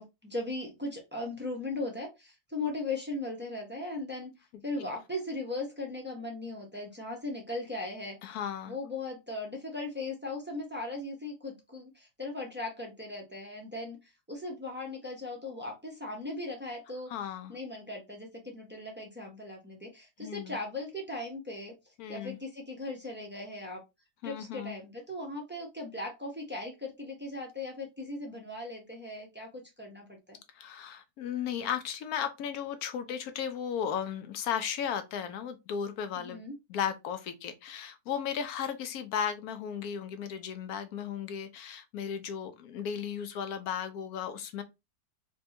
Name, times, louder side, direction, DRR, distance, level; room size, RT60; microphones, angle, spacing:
voice 1, 0.0-4.3 4.6-8.2 8.7-17.1 17.5-21.7 22.1-23.8 24.2-30.4 36.2-36.5, left 2 dB, 15° right, 0.4 m, -38 dB
voice 2, 8.2-8.7 17.1-17.5 20.2-20.6 22.0-22.4 24.2-24.8 30.5-36.4 36.7-44.6, left 8 dB, 70° left, 1.0 m, -35 dB
4.2 x 2.2 x 2.7 m
omnidirectional pair, 1.7 m